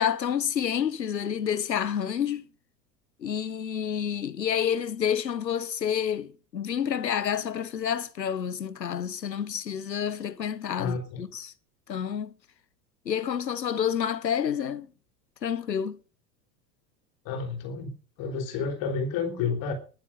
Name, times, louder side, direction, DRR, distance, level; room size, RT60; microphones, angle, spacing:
voice 1, 0.0-2.4 3.2-11.5 11.9-12.3 13.0-14.9 15.4-16.0, left 8 dB, 85° left, 1.2 m, -29 dB
voice 2, 10.8-11.2 17.2-17.9 18.2-19.7, left 5 dB, 45° left, 3.4 m, -30 dB
20.5 x 7.3 x 5.5 m
figure-of-eight pair, 85°, 49 cm